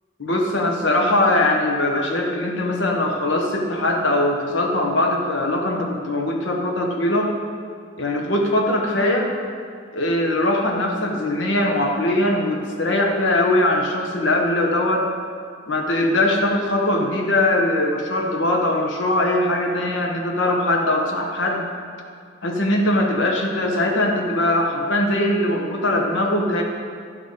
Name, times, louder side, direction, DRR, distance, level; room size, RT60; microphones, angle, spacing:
voice 1, 0.2-7.3 8.0-9.3 9.9-15.1 15.7-21.7 22.4-26.6, left 1 dB, 75° left, 1 dB, 1.1 m, -21 dB
11.0 x 6.1 x 4.0 m, 2.3 s
head